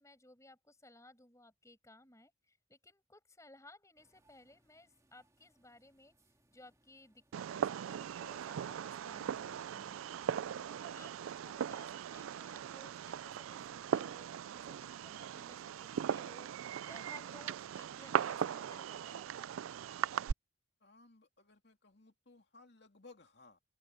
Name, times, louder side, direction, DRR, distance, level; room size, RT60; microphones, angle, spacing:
voice 1, 0.0-6.1 6.5-10.1 10.6-19.5, left 2 dB, 15° left, 7.0 m, -60 dB
sound 1, 4.0-17.8, right 1 dB, 15° right, 2.6 m, -74 dB
Fireworks, 7.3-20.3, right 8 dB, 85° right, 0.3 m, -39 dB
voice 2, 20.8-23.6, left 3 dB, 55° left, 2.8 m, -60 dB
open air
head